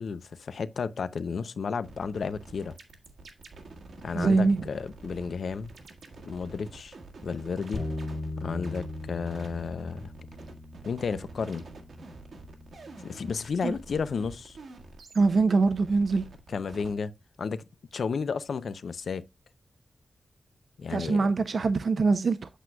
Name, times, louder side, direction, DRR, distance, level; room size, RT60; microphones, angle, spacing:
voice 1, 0.0-2.7 4.0-5.7 6.3-7.0 7.2-7.9 8.4-10.1 10.8-11.6 13.0-14.6 16.5-17.1 17.4-17.7 17.9-19.2 20.8-21.3, left 5 dB, 75° left, 0.5 m, -32 dB
sound 1, 1.8-16.9, right 3 dB, 80° right, 1.6 m, -47 dB
voice 2, 4.1-4.6 13.6-13.7 15.1-16.2 20.9-22.4, right 4 dB, 60° right, 0.5 m, -23 dB
Bass guitar, 7.7-14.0, left 2 dB, 40° left, 1.8 m, -40 dB
8.1 x 7.6 x 2.2 m
wide cardioid pair, 140°, 0 cm